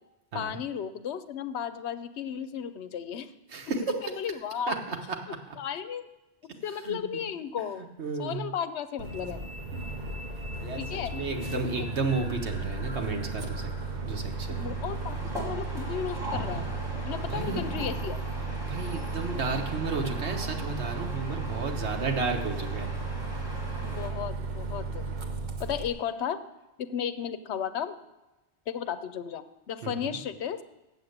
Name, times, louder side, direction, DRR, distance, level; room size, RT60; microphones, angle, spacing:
voice 1, 0.3-3.3 4.2-4.8 5.3-6.1 6.4-7.9 8.2-9.4 10.8-11.1 11.5-11.6 14.5-16.6 17.0-18.2 23.8-25.0 25.6-26.4 26.8-28.0 28.7-30.6, left 8 dB, 80° left, 11 dB, 0.9 m, -34 dB
voice 2, 3.5-3.8 4.7-5.2 6.8-7.2 8.0-8.5 9.7-9.8 10.6-13.7 14.0-14.7 17.2-17.6 18.7-22.9 23.3-23.5 29.8-30.2, right 4 dB, 80° right, 3 dB, 1.5 m, -33 dB
Bus, 9.0-25.9, right 3 dB, 45° right, 0.9 m, -35 dB
sound 1, 11.3-24.1, equal, 5° right, 3.0 m, -41 dB
7.5 x 7.3 x 7.9 m, 1.0 s
omnidirectional pair, 1.1 m